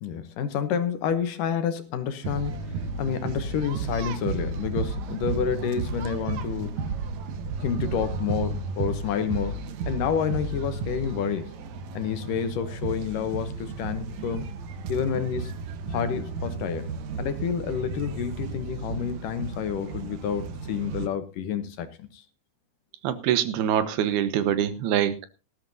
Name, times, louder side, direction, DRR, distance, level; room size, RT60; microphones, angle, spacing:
voice 1, 0.0-2.6 3.0-6.8 7.6-11.5 11.9-14.5 14.9-15.5 15.9-16.9 17.2-22.2, left 7 dB, 70° left, 2.4 m, -29 dB
sound 1, 2.2-21.1, right 4 dB, 65° right, 2.1 m, -33 dB
voice 2, 23.0-25.3, right 10 dB, 80° right, 3.1 m, -24 dB
18.5 x 13.0 x 2.7 m
omnidirectional pair, 4.5 m